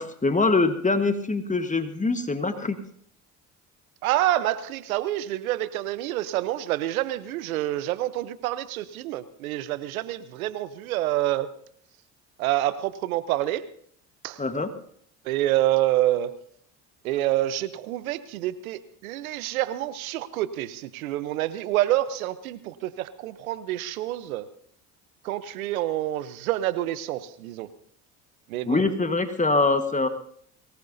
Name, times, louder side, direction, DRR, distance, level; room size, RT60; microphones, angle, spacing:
voice 1, 0.0-2.8 14.4-14.7 28.7-30.1, left 3 dB, 20° left, 8 dB, 1.4 m, -24 dB
voice 2, 4.0-11.5 12.4-13.7 14.2-14.4 15.2-16.3 17.0-24.5 25.2-27.7 28.5-28.8, right 14 dB, 85° right, 15 dB, 0.9 m, -27 dB
22.5 x 19.0 x 2.7 m, 0.62 s
hypercardioid pair, 65°, 41 cm